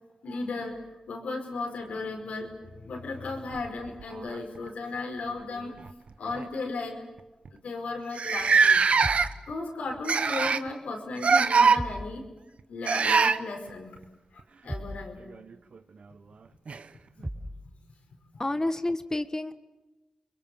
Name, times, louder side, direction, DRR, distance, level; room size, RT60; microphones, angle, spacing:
voice 1, 0.2-5.7 6.2-7.0 7.5-8.8 9.5-12.2 12.7-14.0 14.3-15.3, left 3 dB, 85° left, 2 dB, 5.1 m, -35 dB
sound 1, 3.5-4.7 5.7-5.9 6.3-6.5 7.2-7.3 7.5-7.6 8.2-9.5 10.1-10.7 11.2-11.8 12.9-13.4 15.5-15.6 16.7-16.8, right 5 dB, 65° right, 1.0 m, -22 dB
sound 2, 9.0-9.4 11.8-12.1 14.7-15.1 17.2-17.6, right 1 dB, 25° right, 4.5 m, -35 dB
voice 2, 18.4-19.5, left 2 dB, 25° left, 11 dB, 1.4 m, -29 dB
29.5 x 22.5 x 7.1 m, 1.1 s
cardioid pair, 45°, 2 cm